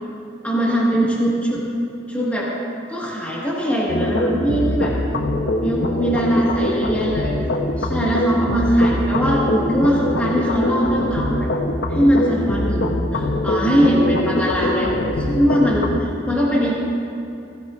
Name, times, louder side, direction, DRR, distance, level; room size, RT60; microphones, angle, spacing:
voice 1, 0.4-1.7 2.1-2.5 2.9-4.9 5.6-7.4 7.8-11.5 11.9-16.7, equal, 10° left, -6 dB, 1.5 m, -21 dB
sound 1, 3.9-16.0, left 1 dB, 90° left, 0.8 m, -23 dB
16.0 x 15.5 x 2.5 m, 2.7 s
head